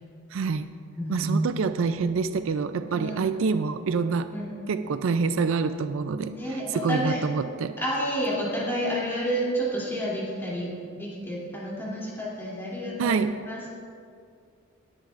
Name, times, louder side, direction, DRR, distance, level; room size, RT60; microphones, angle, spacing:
voice 1, 0.3-0.7 1.1-4.3 4.7-7.7 13.0-13.5, right 5 dB, 65° right, 11 dB, 0.4 m, -26 dB
voice 2, 1.0-1.4 2.9-3.2 4.3-4.5 6.2-7.4 7.8-13.7, equal, 10° left, -6 dB, 2.9 m, -30 dB
19.0 x 10.5 x 2.5 m, 2.3 s
head